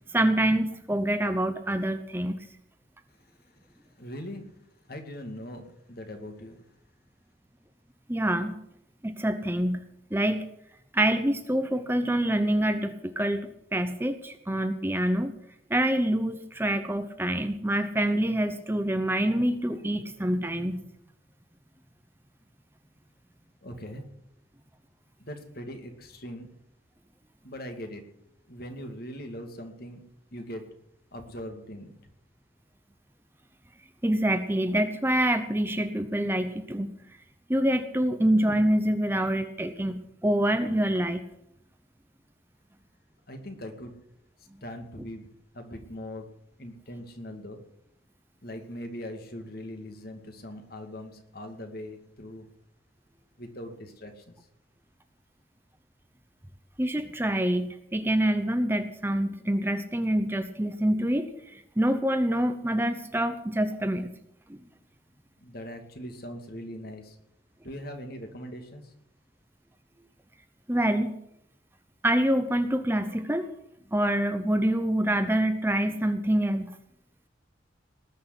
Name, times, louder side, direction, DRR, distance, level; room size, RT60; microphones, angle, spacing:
voice 1, 0.1-2.4 8.1-8.6 9.0-9.8 10.1-10.5 10.9-15.3 15.7-20.8 34.0-36.9 37.5-41.2 56.8-64.1 70.7-71.2 72.0-73.5 73.9-76.7, right 1 dB, 10° right, 8 dB, 0.8 m, -26 dB
voice 2, 3.1-4.5 4.9-6.6 23.6-24.0 25.2-26.5 27.4-28.0 28.5-30.0 30.3-30.6 31.1-31.9 43.3-43.9 44.4-45.3 45.5-46.3 46.6-47.6 48.4-52.5 53.4-54.3 65.4-67.2 67.6-68.9, equal, 50° left, 5 dB, 2.3 m, -41 dB
19.5 x 6.6 x 9.9 m, 0.75 s
head